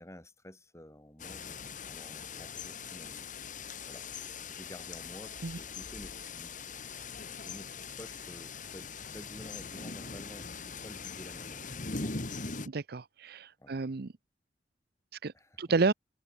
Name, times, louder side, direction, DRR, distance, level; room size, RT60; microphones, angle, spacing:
voice 1, 0.0-3.3 3.9-4.1 4.5-12.3 13.6-13.8 15.3-15.6, equal, 15° left, 7.0 m, -51 dB
sound 1, 1.2-12.7, left 4 dB, 45° left, 2.4 m, -41 dB
voice 2, 12.7-14.1 15.2-15.3 15.6-15.9, right 4 dB, 60° right, 0.7 m, -30 dB
open air
head